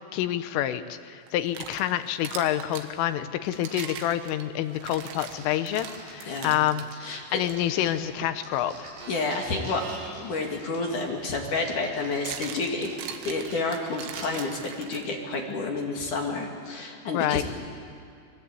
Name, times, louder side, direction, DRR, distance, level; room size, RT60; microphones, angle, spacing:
voice 1, 0.1-8.9 17.1-17.4, left 12 dB, 85° left, 11 dB, 3.5 m, -28 dB
sound 1, 1.3-2.9 3.5-6.9 7.4-7.6 8.2-8.4 10.6-10.7 11.8-15.3, right 8 dB, 80° right, 3.9 m, -41 dB
sound 2, 4.9-8.1 8.4-14.3, right 2 dB, 60° right, 8.1 m, -46 dB
voice 2, 6.3-6.6 7.0-7.4 9.1-9.9 10.2-12.9 13.2-17.4, left 3 dB, 50° left, 1 dB, 3.1 m, -30 dB
29.5 x 22.5 x 8.5 m, 2.4 s
omnidirectional pair, 5.7 m